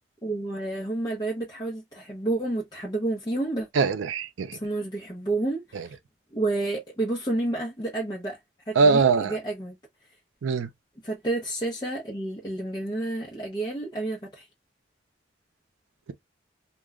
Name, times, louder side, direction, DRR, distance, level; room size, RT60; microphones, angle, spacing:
voice 1, 0.2-3.7 4.5-6.0 6.3-8.4 8.7-9.8 11.0-14.5, right 2 dB, 20° left, 0.6 m, -30 dB
voice 2, 3.7-4.6 5.7-5.9 8.8-9.4 10.4-10.7, right 4 dB, 90° right, 0.4 m, -22 dB
2.2 x 2.0 x 3.4 m
head